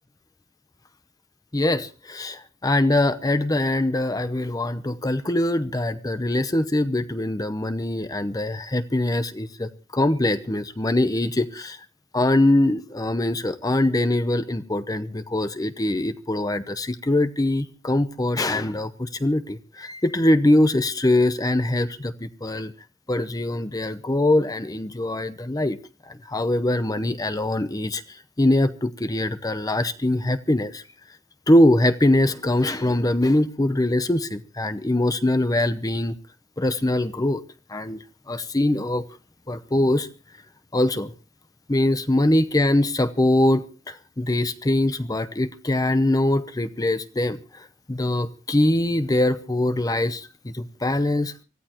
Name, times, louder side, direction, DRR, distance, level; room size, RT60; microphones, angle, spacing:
voice 1, 1.5-11.8 12.1-22.7 23.1-25.8 26.1-30.8 31.5-36.1 36.6-37.4 37.7-39.1 39.5-40.1 40.7-41.1 41.7-51.4, left 1 dB, 20° left, 0.7 m, -23 dB
24.5 x 15.0 x 2.9 m
head